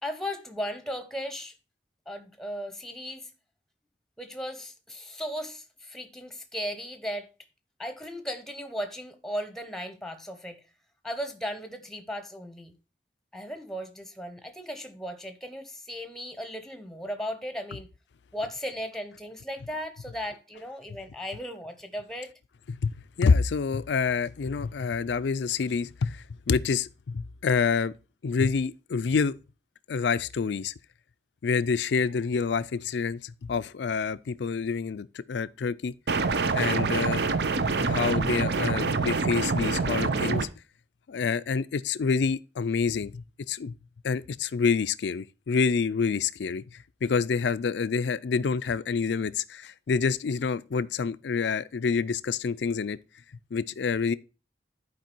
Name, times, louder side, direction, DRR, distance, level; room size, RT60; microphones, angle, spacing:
voice 1, 0.0-1.6 2.1-3.3 4.2-7.3 7.8-10.6 11.0-12.7 13.3-17.9 18.3-22.3, equal, 5° left, 0.8 m, -36 dB
voice 2, 22.7-27.9 28.2-29.3 29.9-30.7 31.4-35.9 36.5-37.2 37.7-40.5 41.1-43.7 44.0-53.0 53.5-54.1, left 5 dB, 85° left, 0.4 m, -27 dB
sound 1, 36.1-40.5, right 4 dB, 70° right, 0.6 m, -26 dB
11.0 x 4.7 x 4.4 m
head